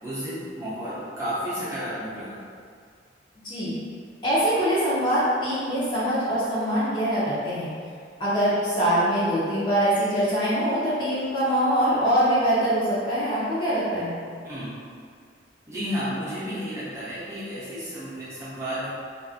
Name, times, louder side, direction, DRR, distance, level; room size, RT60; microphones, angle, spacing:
voice 1, 0.0-2.4 14.4-14.7 15.6-18.9, equal, 15° right, -11 dB, 0.8 m, -32 dB
voice 2, 3.4-3.8 4.2-7.7 8.2-14.2, equal, 25° left, -10 dB, 0.6 m, -23 dB
2.5 x 2.5 x 2.4 m, 2.1 s
head